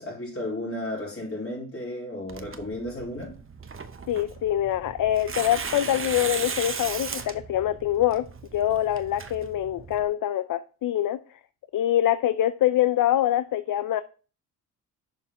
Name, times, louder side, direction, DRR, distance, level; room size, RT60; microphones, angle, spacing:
voice 1, 0.0-3.3, left 1 dB, 35° left, 3.9 m, -33 dB
Tearing, 2.3-10.0, right 5 dB, 30° right, 0.9 m, -37 dB
voice 2, 4.1-11.2 11.7-14.0, left 12 dB, 55° left, 0.5 m, -24 dB
7.0 x 5.3 x 3.7 m
cardioid pair, 65°, 40 cm